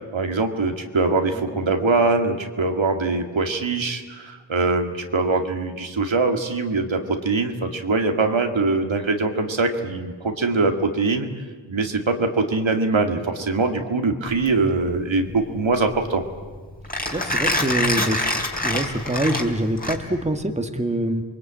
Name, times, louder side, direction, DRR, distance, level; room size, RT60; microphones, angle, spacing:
voice 1, 0.1-11.3 11.7-16.2, right 3 dB, 70° right, 4 dB, 2.2 m, -22 dB
Mechanisms, 14.3-20.4, left 1 dB, 20° left, 3.5 m, -26 dB
voice 2, 17.1-18.3 18.6-21.2, right 1 dB, 15° right, 6 dB, 1.7 m, -24 dB
28.0 x 22.0 x 8.8 m, 1.5 s
wide cardioid pair, 75°, 47 cm